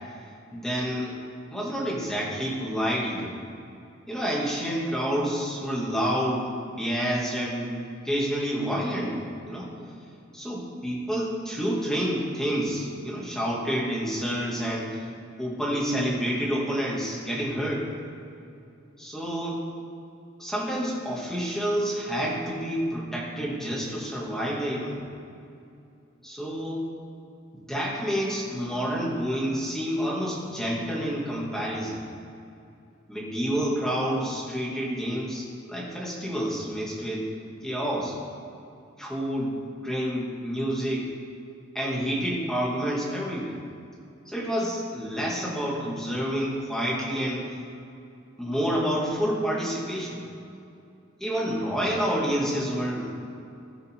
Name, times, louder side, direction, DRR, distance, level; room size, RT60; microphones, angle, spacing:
voice 1, 0.5-1.1 1.5-3.3 4.1-7.7 8.0-9.2 9.5-9.7 10.3-15.0 15.4-17.9 19.0-19.6 20.4-25.0 26.2-26.9 27.7-32.0 33.1-37.3 37.6-38.1 39.0-39.6 39.8-41.1 41.7-43.6 44.3-47.5 48.4-50.2 51.2-53.1, equal, 5° left, -5 dB, 2.5 m, -28 dB
18.5 x 6.3 x 3.8 m, 2.6 s
head